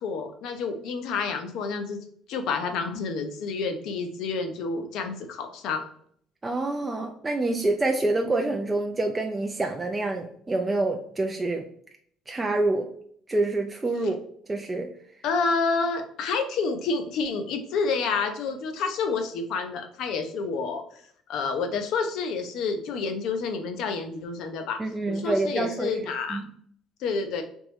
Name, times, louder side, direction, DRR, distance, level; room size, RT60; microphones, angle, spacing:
voice 1, 0.0-2.0 2.3-5.9 15.2-21.0 21.3-24.8 25.1-26.4 27.0-27.4, left 4 dB, 70° left, 6 dB, 0.6 m, -29 dB
voice 2, 6.4-11.6 12.3-12.9 13.3-14.2 14.5-14.9 24.8-25.9 26.3-26.4, right 2 dB, 15° right, 3 dB, 0.3 m, -27 dB
3.5 x 3.0 x 3.1 m, 0.63 s
cardioid pair, 130°, 0 cm